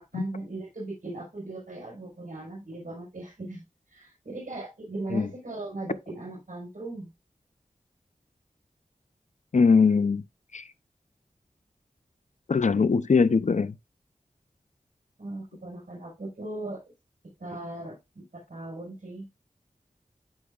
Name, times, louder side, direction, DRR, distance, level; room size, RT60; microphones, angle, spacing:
voice 1, 0.0-3.6 3.9-7.1 15.2-16.8 17.2-19.3, right 2 dB, 70° right, 4.9 m, -38 dB
voice 2, 9.5-10.2 10.5-10.7 12.5-13.8, left 5 dB, 60° left, 0.6 m, -21 dB
13.5 x 4.8 x 2.4 m
wide cardioid pair, 50°, 14 cm